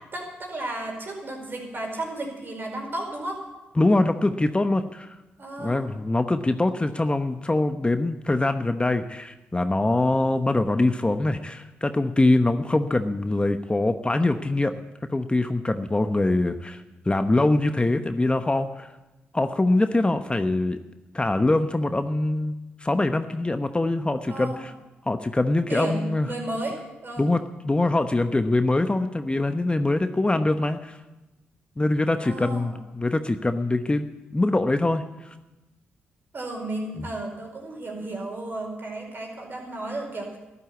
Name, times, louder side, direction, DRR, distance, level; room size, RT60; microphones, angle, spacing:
voice 1, 0.1-3.4 5.4-5.9 24.3-24.6 25.7-27.3 32.2-32.7 36.3-40.4, right 2 dB, 45° right, 1 dB, 5.0 m, -33 dB
voice 2, 3.8-5.1 5.6-14.8 15.1-18.9 19.3-20.8 21.1-22.5 22.8-24.7 25.1-26.3 27.2-27.4 27.6-31.0 31.8-34.1 34.3-35.0 37.0-37.1, left 2 dB, 20° left, 9 dB, 0.9 m, -23 dB
12.5 x 11.5 x 8.3 m, 1.0 s
supercardioid pair, 45°, 5 cm